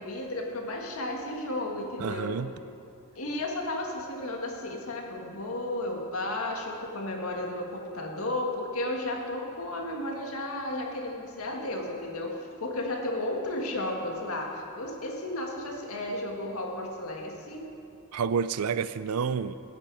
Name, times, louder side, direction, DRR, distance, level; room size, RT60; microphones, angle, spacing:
voice 1, 0.0-2.4 3.2-17.7, left 1 dB, 75° left, 1 dB, 1.8 m, -33 dB
voice 2, 2.0-2.5 18.1-19.6, right 6 dB, 80° right, 14 dB, 0.4 m, -29 dB
16.0 x 8.9 x 4.8 m, 2.6 s
head